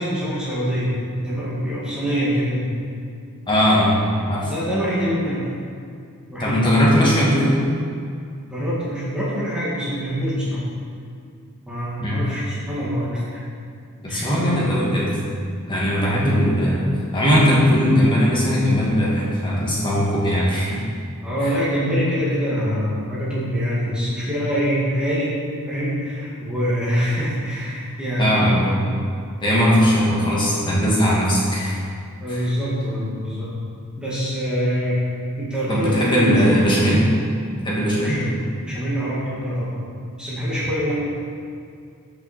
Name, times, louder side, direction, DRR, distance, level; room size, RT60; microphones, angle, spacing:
voice 1, 0.0-2.7 4.5-5.5 6.3-6.6 8.5-10.6 11.7-13.4 14.1-14.3 21.2-25.4 25.7-28.7 32.2-33.5 34.0-35.0 35.4-36.9 38.0-39.9 40.2-40.9, equal, 5° right, -9 dB, 1.8 m, -24 dB
voice 2, 3.5-4.0 4.3-4.5 6.4-7.6 12.0-12.3 14.0-15.1 15.7-20.8 28.2-28.8 29.4-31.8 32.3-32.4 35.7-37.0 37.6-38.2, equal, 20° left, -7 dB, 2.2 m, -19 dB
13.5 x 6.0 x 4.3 m, 2.3 s
head